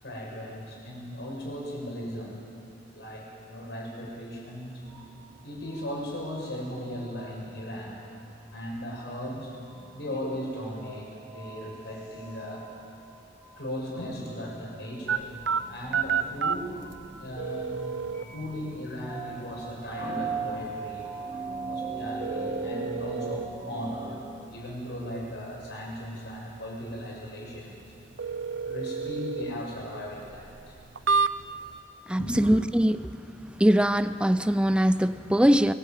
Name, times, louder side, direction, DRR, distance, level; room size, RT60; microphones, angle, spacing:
voice 1, 0.0-2.4 2.9-4.7 5.4-8.0 8.5-9.5 9.9-12.7 13.6-15.4 15.7-16.8 17.1-17.8 18.1-24.2 24.4-27.8 28.6-30.7 32.2-32.5, equal, 65° left, -2 dB, 7.2 m, -37 dB
sound 1, 4.8-24.4, right 4 dB, 25° right, 2.7 m, -41 dB
sound 2, 15.1-31.8, right 5 dB, 80° right, 0.8 m, -33 dB
voice 2, 32.1-33.1 33.6-35.7, equal, 5° right, 11 dB, 0.6 m, -22 dB
25.5 x 20.0 x 9.2 m, 2.5 s
head